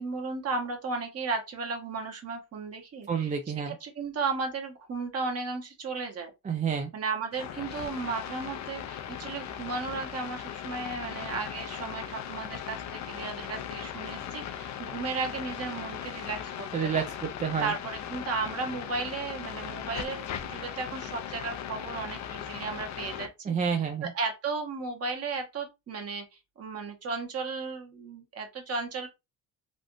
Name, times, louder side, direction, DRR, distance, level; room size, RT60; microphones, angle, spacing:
voice 1, 0.0-3.3 3.7-6.3 6.9-17.0 17.6-26.2 26.6-29.1, right 4 dB, 45° right, 1.1 m, -35 dB
voice 2, 3.1-3.7 6.4-6.9 16.7-17.7 23.5-24.1, right 7 dB, 20° right, 0.4 m, -29 dB
sound 1, 7.3-23.3, left 9 dB, 50° left, 0.5 m, -38 dB
3.4 x 2.4 x 2.5 m
cardioid pair, 105°, 35 cm